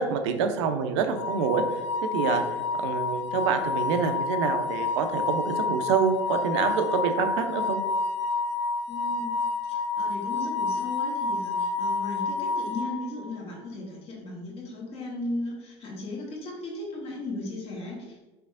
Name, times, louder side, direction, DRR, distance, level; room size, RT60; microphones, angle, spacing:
voice 1, 0.0-1.8 2.1-2.4 2.8-7.8, right 6 dB, 65° right, 7 dB, 0.5 m, -26 dB
sound 1, 1.2-13.4, left 4 dB, 70° left, 0.6 m, -29 dB
voice 2, 8.9-9.4 9.6-18.3, left 2 dB, 40° left, -3 dB, 1.4 m, -36 dB
4.4 x 3.3 x 2.5 m, 1.2 s
hypercardioid pair, 75°, 16 cm